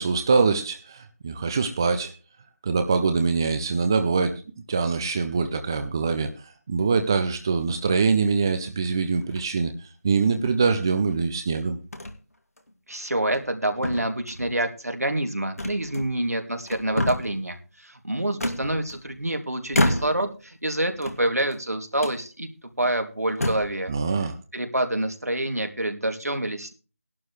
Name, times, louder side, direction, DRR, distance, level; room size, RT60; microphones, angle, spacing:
voice 1, 0.0-2.1 2.6-4.3 4.7-6.3 6.7-9.7 10.0-11.8 23.9-24.4, right 4 dB, 15° right, 7 dB, 0.6 m, -23 dB
sound 1, 9.2-9.6 10.4-11.2 11.9-12.2 12.6-12.7 13.2-13.6 13.8-14.5 15.6-16.3 16.6-17.4 18.4-19.2 19.7-20.4 20.9-21.6 22.0-22.2 22.8-22.9 23.3-23.8, left 1 dB, 75° left, 2.4 m, -29 dB
voice 2, 12.9-22.5 22.8-23.9 24.5-26.7, right 1 dB, 85° right, 5 dB, 2.5 m, -27 dB
15.5 x 11.5 x 3.2 m, 0.33 s
figure-of-eight pair, 165°, 8 cm